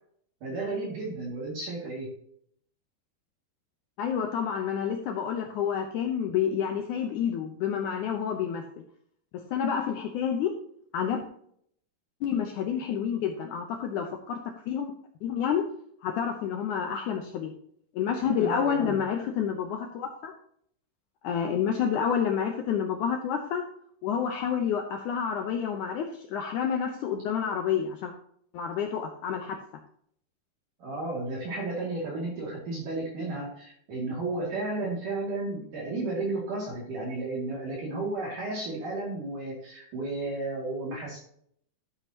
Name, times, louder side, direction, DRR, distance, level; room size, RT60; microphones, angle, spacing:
voice 1, 0.4-2.1 18.2-19.0 30.8-41.2, right 2 dB, 55° right, -4 dB, 3.7 m, -33 dB
voice 2, 4.0-8.6 9.3-10.5 10.9-11.2 12.2-14.4 14.7-14.9 15.2-15.6 16.0-17.5 18.0-20.3 21.2-23.6 24.0-28.1 28.5-29.6, left 8 dB, 80° left, 4 dB, 1.8 m, -29 dB
12.5 x 7.7 x 2.8 m, 0.66 s
omnidirectional pair, 4.6 m